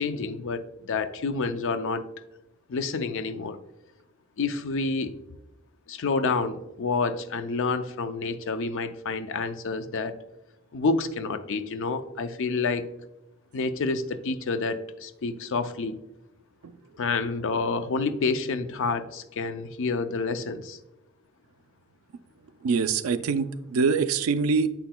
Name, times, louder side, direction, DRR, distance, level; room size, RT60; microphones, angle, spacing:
voice 1, 0.0-2.0 2.7-3.6 4.4-5.2 5.9-10.1 10.7-12.8 13.5-16.0 17.0-20.8, left 4 dB, 60° left, 10 dB, 0.5 m, -28 dB
voice 2, 22.6-24.7, right 5 dB, 75° right, 12 dB, 0.4 m, -24 dB
7.7 x 5.9 x 2.2 m, 0.96 s
head